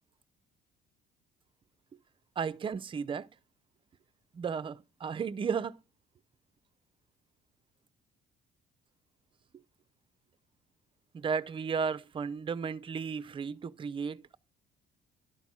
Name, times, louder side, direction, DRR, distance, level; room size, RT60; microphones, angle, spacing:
voice 1, 2.4-3.3 4.3-5.8 11.1-14.4, right 6 dB, 30° right, 0.5 m, -34 dB
12.0 x 4.1 x 6.0 m
cardioid pair, 110°, 17 cm